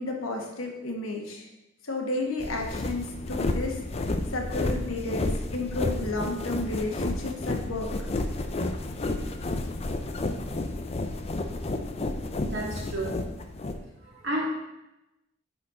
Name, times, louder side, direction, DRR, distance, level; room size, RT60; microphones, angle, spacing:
voice 1, 0.0-1.5 1.8-3.8 4.3-7.9, left 2 dB, 80° left, 1 dB, 1.3 m, -32 dB
sound 1, 2.4-13.8, left 2 dB, 30° left, 0.4 m, -31 dB
voice 2, 12.4-13.2 14.0-14.4, right 1 dB, 55° right, -4 dB, 2.2 m, -31 dB
9.7 x 4.3 x 3.8 m, 0.95 s
head